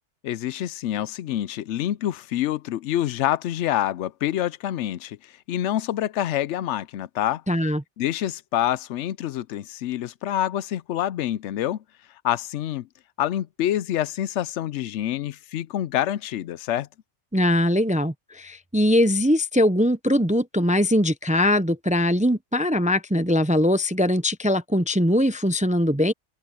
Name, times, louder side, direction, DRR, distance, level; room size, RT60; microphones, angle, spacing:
voice 1, 0.2-7.4 8.0-11.8 12.2-12.9 13.2-16.9, left 12 dB, 80° left, 0.9 m, -27 dB
voice 2, 7.5-7.8 17.3-26.1, left 1 dB, 10° right, 0.5 m, -21 dB
open air
omnidirectional pair, 1.2 m